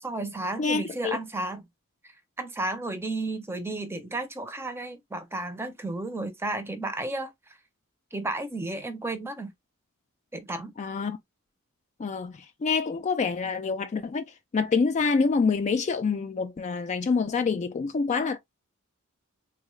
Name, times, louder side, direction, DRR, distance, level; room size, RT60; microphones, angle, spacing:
voice 1, 0.0-1.6 2.4-7.3 8.1-9.5 10.3-10.7, right 2 dB, 10° right, 0.6 m, -33 dB
voice 2, 0.6-1.2 10.8-11.2 12.0-14.2 14.5-18.4, left 4 dB, 35° left, 0.3 m, -26 dB
3.6 x 2.3 x 3.1 m
head